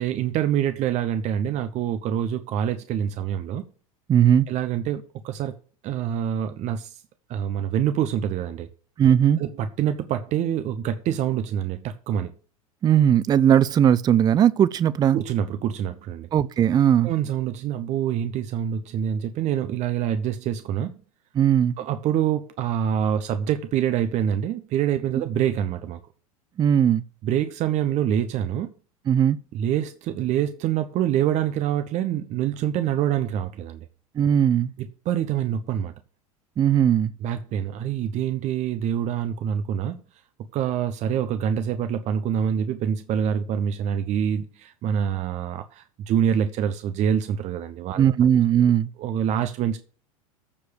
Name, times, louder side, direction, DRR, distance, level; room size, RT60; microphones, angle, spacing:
voice 1, 0.0-3.6 4.5-5.6 5.8-7.0 7.3-8.7 9.4-12.3 15.1-16.3 17.0-21.0 21.8-26.0 27.2-28.7 29.5-33.9 34.8-35.9 37.2-40.0 40.5-48.1 49.0-49.8, right 9 dB, 40° right, 0.9 m, -26 dB
voice 2, 4.1-4.5 9.0-9.4 12.8-15.2 16.3-17.1 21.4-21.8 26.6-27.0 29.1-29.4 34.2-34.7 36.6-37.1 48.0-48.9, right 9 dB, 20° right, 0.4 m, -18 dB
14.0 x 4.8 x 6.6 m
figure-of-eight pair, 85°, 19 cm